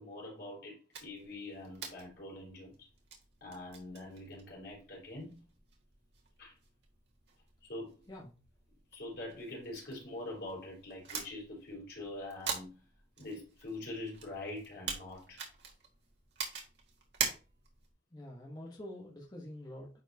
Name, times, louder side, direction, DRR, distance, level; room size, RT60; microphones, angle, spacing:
voice 1, 0.0-2.9 3.4-5.4 6.4-6.5 7.7-7.9 8.9-12.8 13.2-15.4, left 2 dB, 70° left, 4.3 m, -44 dB
sound 1, 0.9-17.9, right 5 dB, 85° right, 1.9 m, -45 dB
voice 2, 18.1-19.9, left 1 dB, 25° left, 1.1 m, -46 dB
10.5 x 4.5 x 2.8 m
head